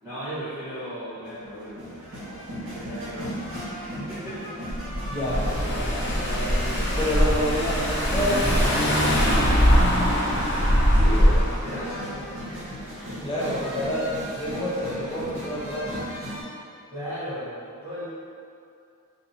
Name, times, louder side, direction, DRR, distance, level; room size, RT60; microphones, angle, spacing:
voice 1, 0.0-3.3 3.8-4.5 5.4-7.7 10.9-12.8 13.1-13.9 14.8-15.1 16.9-18.1, equal, 10° right, -16 dB, 1.3 m, -36 dB
sound 1, 1.2-16.4, equal, 70° right, 1.3 m, -36 dB
Car / Engine, 4.7-11.6, equal, 55° left, 0.8 m, -22 dB
voice 2, 5.1-5.4 5.8-6.1 7.0-8.9 13.2-16.0, equal, 25° left, -6 dB, 0.6 m, -28 dB
sound 2, 5.3-15.4, equal, 40° right, 1.3 m, -35 dB
2.6 x 2.6 x 4.1 m, 2.5 s
head